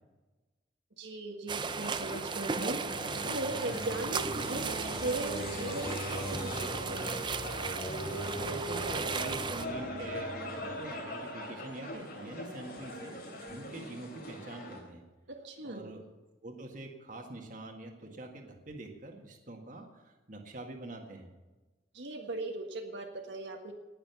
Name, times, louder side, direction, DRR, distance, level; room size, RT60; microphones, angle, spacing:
voice 1, 1.0-2.8 3.3-7.1 15.3-15.9 21.9-23.7, right 2 dB, 70° right, 2 dB, 1.6 m, -38 dB
sound 1, 1.5-9.7, right 5 dB, 25° right, 0.5 m, -36 dB
sound 2, 1.7-14.8, equal, 50° left, 3.3 m, -40 dB
voice 2, 8.4-15.0 15.6-16.0 16.4-21.3, right 2 dB, 40° right, 3 dB, 1.8 m, -45 dB
18.5 x 6.9 x 6.9 m, 1.2 s
head